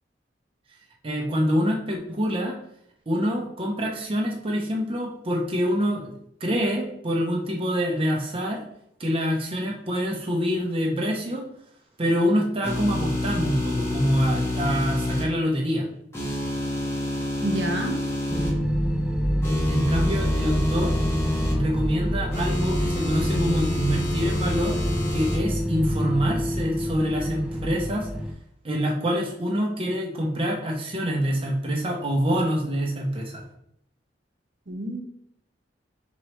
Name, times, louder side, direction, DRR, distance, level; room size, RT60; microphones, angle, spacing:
voice 1, 1.0-2.5 3.1-8.6 9.0-11.4 12.0-15.9 19.7-20.9 21.5-24.8 25.1-28.1 28.6-33.4, equal, 30° right, -1 dB, 0.7 m, -26 dB
sound 1, 12.6-15.2 16.1-18.5 19.4-21.5 22.3-25.4, left 1 dB, 15° left, 1.0 m, -28 dB
voice 2, 17.4-18.0 34.7-35.0, right 1 dB, 75° right, 1 dB, 0.9 m, -28 dB
sound 2, 18.3-28.3, equal, 5° right, 0.3 m, -27 dB
4.6 x 3.0 x 3.1 m, 0.73 s
head